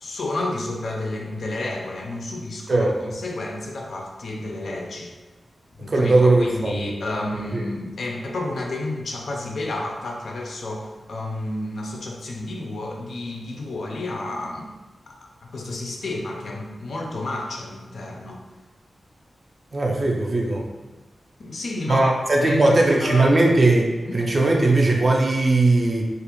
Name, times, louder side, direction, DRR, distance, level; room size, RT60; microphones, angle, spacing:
voice 1, 0.0-5.1 5.8-14.7 15.1-15.2 15.4-18.4 21.4-22.1 22.4-23.4 24.0-24.3, left 2 dB, 70° left, 0 dB, 0.4 m, -31 dB
voice 2, 5.8-6.9 7.5-7.6 19.7-20.6 21.9-23.9 24.1-26.0, right 2 dB, 35° right, 0 dB, 0.4 m, -19 dB
2.4 x 2.0 x 2.8 m, 1.2 s
wide cardioid pair, 120°, 0 cm